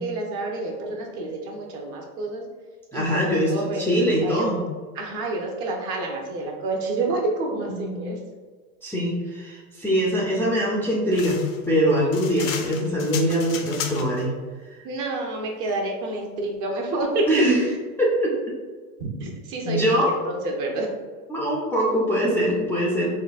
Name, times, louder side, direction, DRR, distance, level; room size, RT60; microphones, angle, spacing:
voice 1, 0.0-2.4 2.9-3.9 4.2-4.4 4.9-8.2 14.8-17.3 19.0-20.9, right 2 dB, 50° right, 0 dB, 0.9 m, -29 dB
voice 2, 2.9-4.6 7.6-8.1 8.8-11.4 11.7-14.3 14.7-14.8 17.3-17.6 18.0-18.3 19.6-20.2 21.3-23.1, equal, 5° left, -5 dB, 0.4 m, -23 dB
sound 1, 11.1-14.3, left 7 dB, 70° left, 0.6 m, -34 dB
3.9 x 2.2 x 2.4 m, 1.4 s
hypercardioid pair, 90°, 42 cm